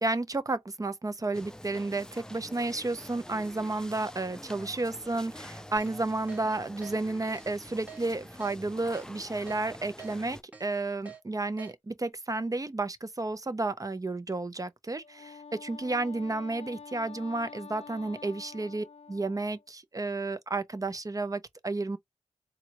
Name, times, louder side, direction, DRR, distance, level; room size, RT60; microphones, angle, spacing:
voice 1, 0.0-22.0, right 2 dB, 30° right, 0.7 m, -32 dB
sound 1, 1.3-10.4, left 1 dB, 5° left, 0.6 m, -47 dB
Keyboard (musical), 5.8-5.9 6.3-6.4 6.8-7.0 7.3-7.5 7.9-8.0 8.4-8.5 8.9-9.1 9.5-9.6 10.0-10.1 10.5-10.7 11.1-11.2 11.6-11.7, right 6 dB, 10° right, 1.9 m, -46 dB
Wind instrument woodwind instrument, 15.0-19.7, left 5 dB, 55° left, 0.4 m, -47 dB
4.0 x 2.3 x 3.0 m
cardioid pair, 50°, 12 cm